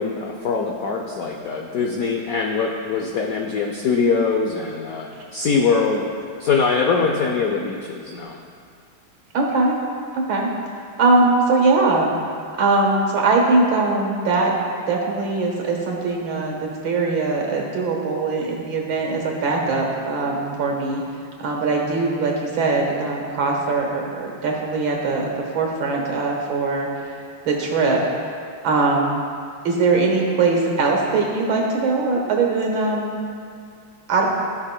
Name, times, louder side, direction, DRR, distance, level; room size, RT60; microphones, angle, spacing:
voice 1, 0.0-6.1 6.4-8.4, left 5 dB, 80° left, 1 dB, 0.8 m, -22 dB
voice 2, 9.3-9.8 10.1-10.5 11.0-12.1 12.6-14.5 14.9-21.0 21.4-26.9 27.4-28.0 28.6-29.2 29.6-33.1 34.1-34.3, right 3 dB, 70° right, -1 dB, 2.0 m, -21 dB
15.5 x 6.3 x 2.2 m, 2.3 s
omnidirectional pair, 2.2 m